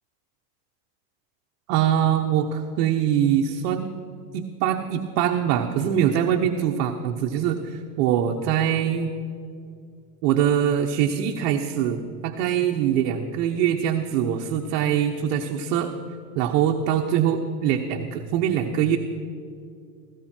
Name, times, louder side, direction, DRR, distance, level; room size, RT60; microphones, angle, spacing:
voice 1, 1.7-3.9 4.3-9.1 10.2-15.9 16.4-19.0, right 9 dB, 65° right, 4 dB, 1.2 m, -23 dB
18.5 x 16.0 x 4.5 m, 2.5 s
supercardioid pair, 125°, 47 cm